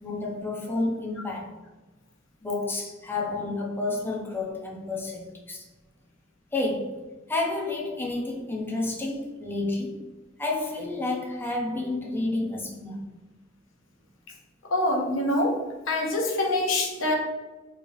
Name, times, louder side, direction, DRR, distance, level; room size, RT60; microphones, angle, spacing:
voice 1, 0.0-1.5 2.4-5.6 6.5-7.0 7.3-10.0 10.4-13.0, left 2 dB, 10° left, -2 dB, 0.6 m, -30 dB
voice 2, 14.7-15.6 15.9-17.1, left 1 dB, 85° left, 0 dB, 0.7 m, -25 dB
3.2 x 3.0 x 2.6 m, 1.2 s
head